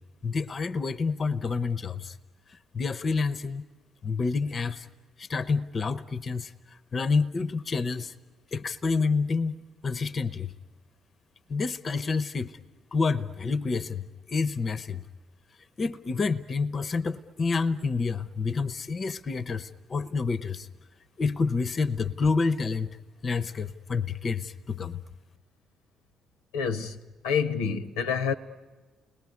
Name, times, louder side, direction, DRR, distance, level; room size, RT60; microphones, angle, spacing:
voice 1, 0.2-2.2 2.7-3.6 4.0-4.9 5.2-6.5 6.9-8.1 8.5-9.6 9.8-10.5 11.5-12.5 12.9-15.0 15.8-20.7 21.2-22.9 23.2-25.0, left 4 dB, 40° left, 0.7 m, -28 dB
voice 2, 26.5-28.3, left 6 dB, 70° left, 0.8 m, -28 dB
29.5 x 20.0 x 9.6 m
figure-of-eight pair, 45°, 0 cm